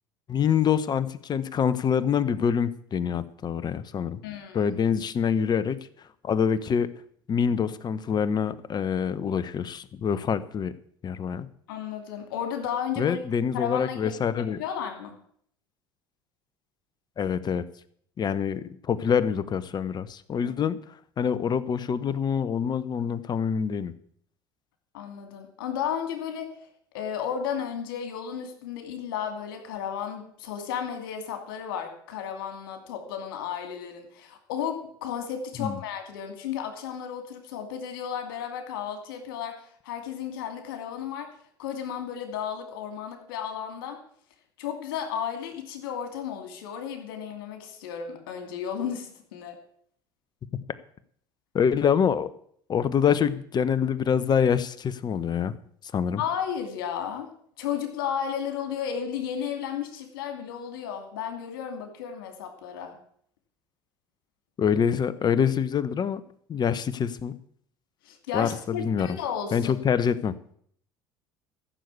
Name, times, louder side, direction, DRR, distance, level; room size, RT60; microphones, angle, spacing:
voice 1, 0.3-4.2 4.5-5.8 6.2-6.9 7.3-10.7 11.0-11.5 13.0-14.6 17.2-17.6 18.2-20.8 21.2-23.9 35.6-35.8 51.5-52.3 52.7-55.5 55.9-56.2 64.6-66.2 66.5-67.3 68.3-69.2 69.5-70.3, left 7 dB, 40° left, 15 dB, 1.1 m, -25 dB
voice 2, 4.2-4.6 11.7-13.2 13.5-14.2 14.6-15.2 20.4-20.5 24.9-26.6 26.9-39.6 39.8-41.3 41.6-44.0 44.6-49.6 56.2-57.3 57.6-63.0 68.0-69.7, left 8 dB, 80° left, 5 dB, 2.5 m, -33 dB
14.5 x 6.8 x 8.3 m, 0.63 s
hypercardioid pair, 75°, 12 cm